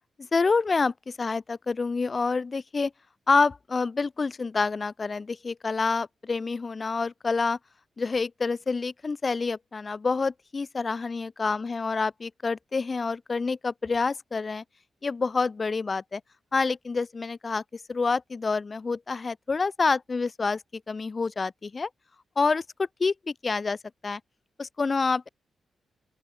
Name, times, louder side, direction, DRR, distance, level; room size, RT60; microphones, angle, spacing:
voice 1, 0.2-2.9 3.3-7.6 8.0-14.6 15.0-16.2 16.5-20.6 20.9-21.9 22.4-23.8 24.0-24.2 24.6-25.3, left 4 dB, 40° left, 0.3 m, -27 dB
open air
cardioid pair, 80°, 0 cm